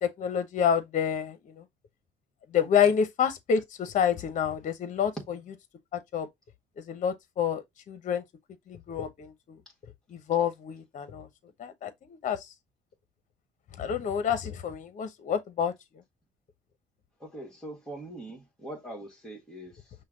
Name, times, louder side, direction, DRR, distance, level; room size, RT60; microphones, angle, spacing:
voice 1, 0.0-1.6 2.5-5.4 5.9-6.3 6.9-8.2 8.7-9.6 10.1-11.3 11.6-12.4 13.8-15.7, left 8 dB, 45° left, 0.9 m, -28 dB
voice 2, 17.2-19.9, right 1 dB, 5° left, 1.6 m, -42 dB
5.6 x 2.3 x 3.7 m
cardioid pair, 110°, 17 cm